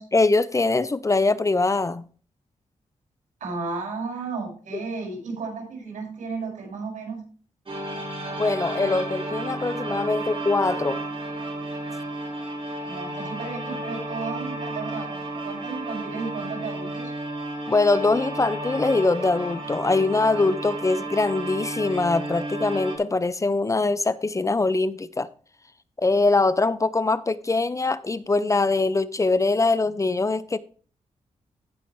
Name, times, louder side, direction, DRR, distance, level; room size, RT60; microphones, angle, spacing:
voice 1, 0.1-2.0 8.4-11.0 17.7-25.3 26.0-30.6, left 3 dB, 25° left, 0.6 m, -22 dB
voice 2, 3.4-7.3 12.9-17.1, right 4 dB, 85° right, 5.6 m, -33 dB
sound 1, 7.7-23.0, right 2 dB, 40° right, 3.7 m, -32 dB
16.5 x 5.7 x 3.2 m
cardioid pair, 95°, 13 cm